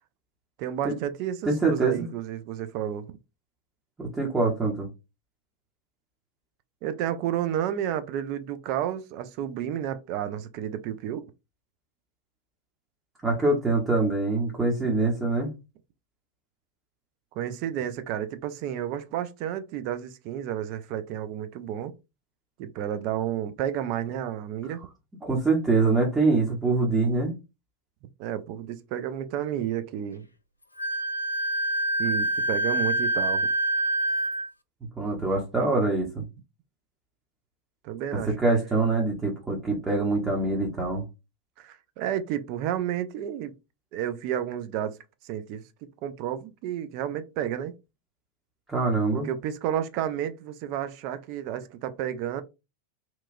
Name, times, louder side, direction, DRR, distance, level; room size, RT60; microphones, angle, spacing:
voice 1, 0.6-3.1 6.8-11.3 17.4-21.9 22.6-24.8 28.2-30.3 32.0-33.5 37.8-38.3 41.6-43.5 43.9-45.0 45.2-45.6 46.0-47.7 49.1-52.4, right 10 dB, 45° right, 0.3 m, -31 dB
voice 2, 1.4-2.1 4.0-4.9 13.2-15.5 25.2-27.3 35.0-36.2 38.3-41.0 48.7-49.3, right 3 dB, 15° right, 0.8 m, -24 dB
Wind instrument woodwind instrument, 30.8-34.5, right 1 dB, 85° left, 0.3 m, -26 dB
2.9 x 2.3 x 2.5 m
figure-of-eight pair, 90°, 0 cm